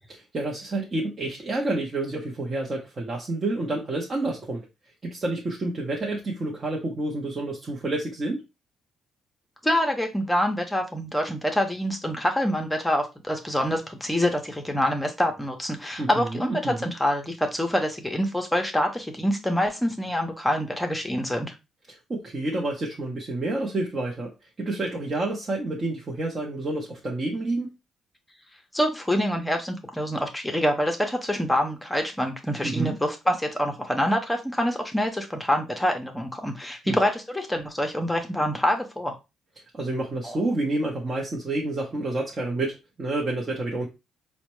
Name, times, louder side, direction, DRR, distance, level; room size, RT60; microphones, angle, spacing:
voice 1, 0.3-4.6 5.0-8.4 16.0-16.9 21.9-24.3 24.6-27.7 32.6-33.0 36.8-37.0 39.7-43.9, right 2 dB, 35° right, -2 dB, 0.7 m, -29 dB
voice 2, 9.6-21.5 28.7-39.2 40.2-40.4, equal, 5° left, 4 dB, 0.7 m, -26 dB
4.2 x 2.1 x 3.0 m, 0.26 s
cardioid pair, 90°, 0 cm